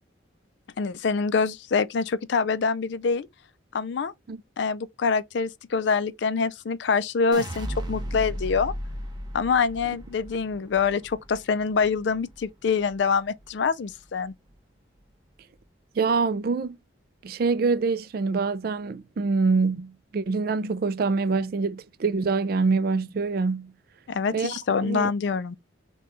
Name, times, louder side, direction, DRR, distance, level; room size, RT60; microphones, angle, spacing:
voice 1, 0.8-3.3 3.7-4.1 4.6-8.7 9.3-14.3 24.1-25.6, left 5 dB, 60° left, 0.4 m, -25 dB
sound 1, 7.3-13.5 13.9-14.5, equal, 20° right, 0.7 m, -36 dB
voice 2, 16.0-16.8 17.2-23.7 24.3-25.1, right 4 dB, 50° right, 0.3 m, -25 dB
6.0 x 2.2 x 3.0 m
head